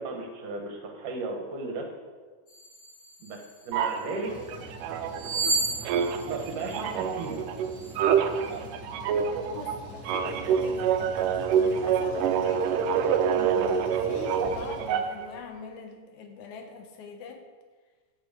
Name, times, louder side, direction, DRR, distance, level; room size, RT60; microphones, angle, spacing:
voice 1, 0.0-1.9 3.2-4.6 6.2-7.4, right 3 dB, 75° right, 2 dB, 3.1 m, -35 dB
sound 1, 2.5-4.0 5.1-7.3 7.7-7.9, right 2 dB, 35° left, 3.0 m, -32 dB
sound 2, 3.7-5.5 5.8-15.3, right 7 dB, 90° right, 2.3 m, -27 dB
Truck, 4.2-15.4, equal, 25° right, 4.5 m, -44 dB
voice 2, 9.5-12.6 13.3-17.4, left 5 dB, 70° left, 4 dB, 2.4 m, -43 dB
14.5 x 7.1 x 5.2 m, 1.4 s
omnidirectional pair, 3.7 m